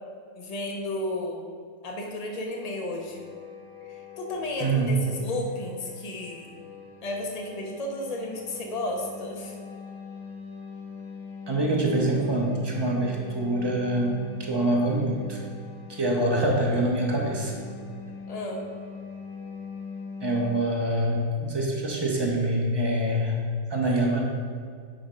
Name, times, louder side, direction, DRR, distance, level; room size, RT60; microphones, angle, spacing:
voice 1, 0.4-1.5 1.8-3.3 3.9-6.5 7.0-9.5 18.3-18.7, left 1 dB, 45° left, 1 dB, 0.5 m, -33 dB
sound 1, 2.4-20.6, left 5 dB, 85° left, 1.6 m, -43 dB
voice 2, 4.6-4.9 11.5-15.4 15.9-17.5 20.2-23.4 23.7-24.2, right 1 dB, 30° right, -1 dB, 0.5 m, -25 dB
5.0 x 4.2 x 5.0 m, 2.1 s
omnidirectional pair, 1.6 m